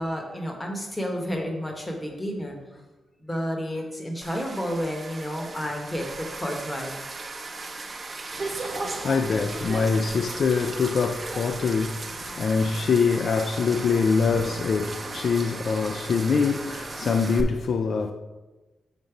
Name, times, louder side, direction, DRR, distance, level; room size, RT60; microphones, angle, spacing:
voice 1, 0.0-2.8 3.2-7.0, equal, 10° left, 0.9 m, -31 dB
sound 1, 4.2-17.4, right 3 dB, 25° right, 0.5 m, -36 dB
voice 2, 8.3-18.1, left 5 dB, 50° left, 0.3 m, -24 dB
5.2 x 4.0 x 5.8 m
wide cardioid pair, 170°, 0 cm